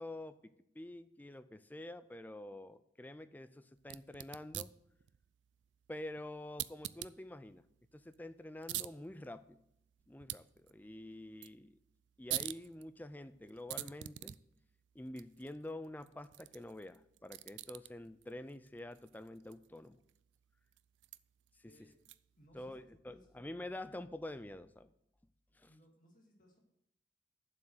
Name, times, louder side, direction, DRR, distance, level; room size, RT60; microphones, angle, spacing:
voice 1, 0.0-4.7 5.9-7.6 7.9-9.6 10.1-11.8 12.2-14.4 14.9-20.0 21.6-21.7 22.5-24.9 25.5-25.7, left 1 dB, 10° left, 12 dB, 0.4 m, -47 dB
sound 1, 3.8-22.5, right 15 dB, 75° right, 0.3 m, -48 dB
voice 2, 22.3-23.3 25.5-26.6, equal, 45° left, 0 dB, 2.2 m, -65 dB
7.5 x 6.2 x 7.9 m, 0.75 s
head